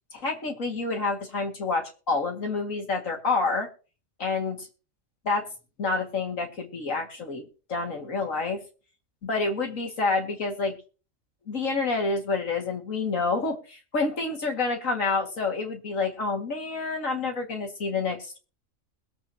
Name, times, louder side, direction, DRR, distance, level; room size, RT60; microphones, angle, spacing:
voice 1, 0.1-3.7 4.2-4.7 5.2-5.4 5.8-8.6 9.2-10.8 11.5-18.4, left 3 dB, 70° left, 1 dB, 2.5 m, -28 dB
22.0 x 8.1 x 2.9 m, 0.37 s
omnidirectional pair, 1.4 m